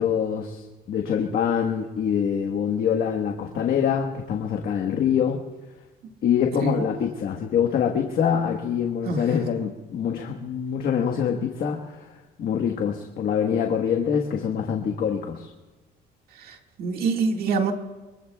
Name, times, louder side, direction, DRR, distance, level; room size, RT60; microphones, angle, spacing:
voice 1, 0.0-5.4 6.2-12.1 12.4-15.5, left 8 dB, 60° left, 2 dB, 1.4 m, -25 dB
voice 2, 16.8-17.7, right 4 dB, 65° right, 3 dB, 2.0 m, -24 dB
24.0 x 23.0 x 2.4 m, 1.2 s
cardioid pair, 110°, 17 cm